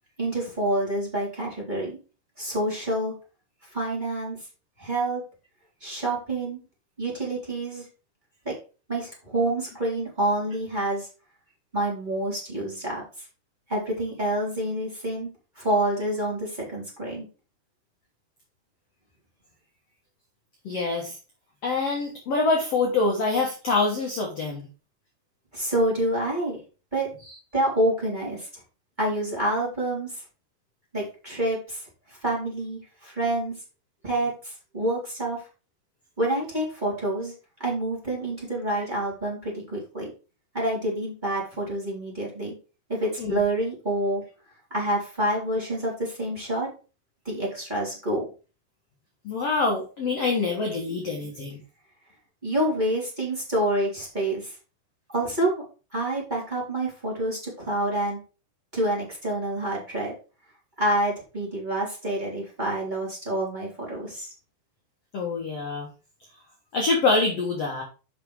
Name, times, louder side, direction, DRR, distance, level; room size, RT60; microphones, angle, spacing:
voice 1, 0.2-1.9 2.4-3.1 3.7-4.4 4.8-5.2 5.8-6.6 7.0-7.8 8.4-8.5 8.9-11.1 11.7-13.0 13.7-15.3 15.5-17.2 25.5-26.6 26.9-27.1 27.5-28.5 29.0-30.2 30.9-33.5 34.0-35.4 36.2-37.3 37.6-40.1 40.5-42.5 42.9-44.2 44.7-46.7 47.2-48.3 52.4-54.5 55.1-55.6 55.9-58.2 58.7-60.1 60.8-64.3, right 1 dB, 10° right, -4 dB, 3.3 m, -27 dB
voice 2, 20.6-21.1 21.6-24.7 43.2-43.4 49.2-51.6 65.1-65.9 66.7-67.8, left 3 dB, 60° left, 0 dB, 1.7 m, -25 dB
6.9 x 5.9 x 4.7 m, 0.34 s
omnidirectional pair, 4.9 m